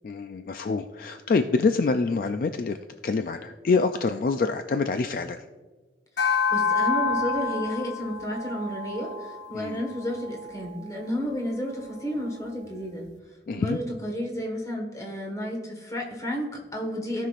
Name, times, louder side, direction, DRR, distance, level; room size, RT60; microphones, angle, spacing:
voice 1, 0.0-2.8 3.0-5.4 9.5-9.8 13.5-13.8, left 4 dB, 50° left, 8 dB, 0.3 m, -26 dB
sound 1, 6.2-10.8, left 5 dB, 80° left, 0.8 m, -28 dB
voice 2, 6.2-13.1 13.5-17.3, equal, 20° left, 0 dB, 1.5 m, -32 dB
16.0 x 5.7 x 2.5 m, 1.3 s
head